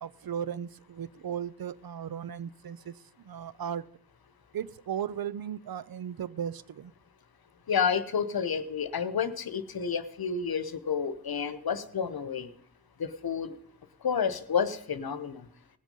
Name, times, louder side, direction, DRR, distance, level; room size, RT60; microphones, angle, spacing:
voice 1, 0.0-3.9 4.5-6.9, right 8 dB, 70° right, 16 dB, 0.5 m, -36 dB
voice 2, 7.7-12.5 13.0-13.6 14.0-15.5, left 6 dB, 75° left, 13 dB, 0.9 m, -30 dB
18.5 x 6.3 x 5.3 m, 0.65 s
wide cardioid pair, 85°, 37 cm